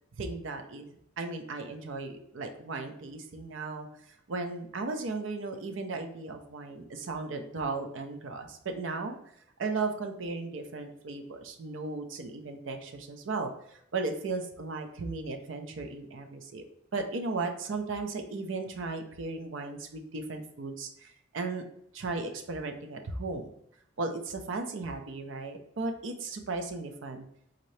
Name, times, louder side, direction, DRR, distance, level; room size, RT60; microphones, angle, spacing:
voice 1, 0.2-0.9 1.2-3.9 4.3-9.2 9.6-16.6 16.9-21.6 21.9-23.5 24.0-27.2, right 3 dB, 75° right, 5 dB, 0.5 m, -36 dB
3.8 x 2.7 x 3.2 m, 0.72 s
head